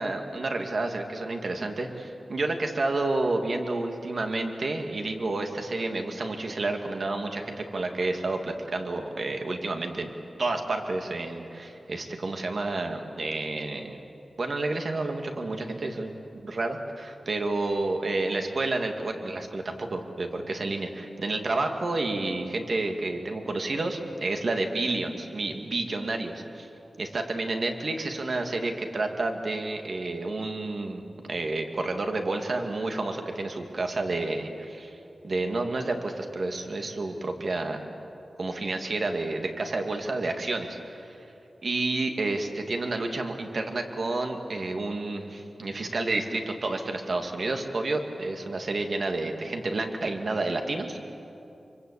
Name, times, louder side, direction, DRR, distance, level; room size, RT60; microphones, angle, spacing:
voice 1, 0.0-10.1 10.4-14.0 14.4-16.1 16.4-26.7 27.0-31.0 31.3-35.0 35.2-37.8 38.4-41.2 41.6-51.1, right 2 dB, 55° right, 4 dB, 2.3 m, -30 dB
25.5 x 24.0 x 8.4 m, 2.9 s
wide cardioid pair, 125°, 0 cm